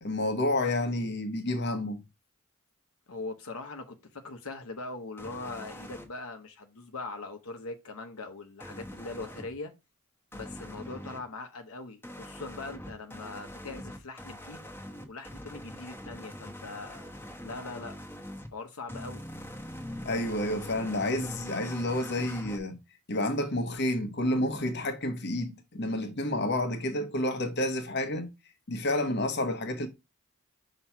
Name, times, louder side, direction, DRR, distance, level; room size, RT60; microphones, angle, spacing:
voice 1, 0.0-2.0 20.0-22.8 23.1-28.3 28.7-29.9, left 1 dB, 50° left, 1.1 m, -30 dB
voice 2, 3.1-9.7 10.3-14.7 15.1-17.1 17.4-18.0 18.5-19.2, left 3 dB, 75° left, 0.9 m, -41 dB
sound 1, 5.2-6.0 8.6-9.5 10.3-11.2 12.0-18.5 18.9-22.6, left 1 dB, 10° left, 1.1 m, -43 dB
5.8 x 3.0 x 5.6 m
head